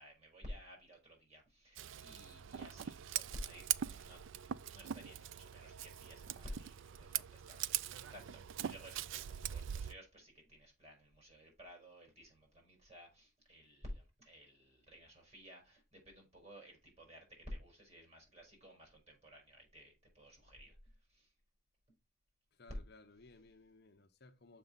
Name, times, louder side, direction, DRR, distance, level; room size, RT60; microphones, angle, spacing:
voice 1, 0.0-20.7 21.1-21.3, equal, 30° right, 4.6 m, -54 dB
Scissors, 1.8-9.9, right 10 dB, 65° right, 0.3 m, -42 dB
voice 2, 22.5-24.6, left 3 dB, 50° left, 0.9 m, -60 dB
6.9 x 5.7 x 3.9 m
head